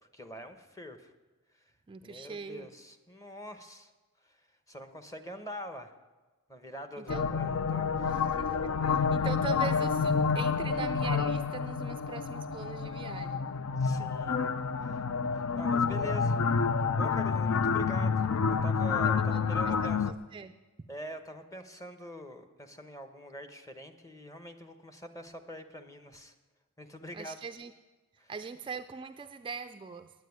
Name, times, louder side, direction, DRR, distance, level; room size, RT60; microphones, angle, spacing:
voice 1, 0.0-1.1 1.5-1.7 2.0-3.9 4.2-5.9 6.5-8.3 8.8-9.0 13.8-14.4 14.8-15.1 15.6-16.7 17.0-20.1 20.9-26.3 26.8-27.4 28.2-28.3, equal, 15° left, 8 dB, 1.0 m, -45 dB
voice 2, 1.9-2.7 7.0-7.3 8.1-13.4 19.0-19.7 20.0-20.5 27.1-27.7 28.3-30.1, right 5 dB, 25° right, 9 dB, 0.3 m, -41 dB
sound 1, 7.1-20.1, left 5 dB, 70° left, 0.5 m, -29 dB
9.6 x 9.3 x 9.4 m, 1.2 s
head